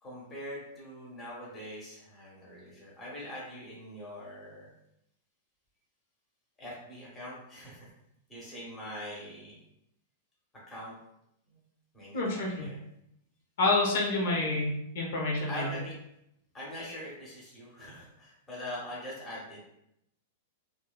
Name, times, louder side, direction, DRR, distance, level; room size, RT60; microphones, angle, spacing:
voice 1, 0.0-4.7 6.6-7.9 8.3-9.6 10.7-10.9 11.5-11.6 11.9-12.8 15.5-15.9 16.5-19.6, left 1 dB, 10° left, -6 dB, 0.7 m, -43 dB
voice 2, 12.1-12.7 13.6-15.6, left 2 dB, 70° left, -2 dB, 0.7 m, -28 dB
2.6 x 2.1 x 2.3 m, 0.79 s
supercardioid pair, 155°, 0 cm